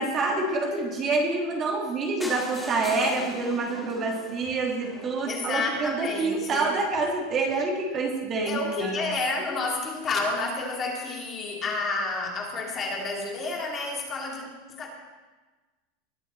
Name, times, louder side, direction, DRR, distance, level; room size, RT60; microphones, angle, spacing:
voice 1, 0.0-8.9, right 3 dB, 25° right, 1 dB, 1.6 m, -27 dB
sound 1, 2.2-6.1 6.7-6.8 7.1-7.2 7.5-7.6 7.7-7.8, left 1 dB, 5° left, 1.7 m, -41 dB
voice 2, 5.2-6.8 8.5-14.9, left 3 dB, 25° left, 0 dB, 2.1 m, -30 dB
20.0 x 7.0 x 4.2 m, 1.3 s
supercardioid pair, 155°, 0 cm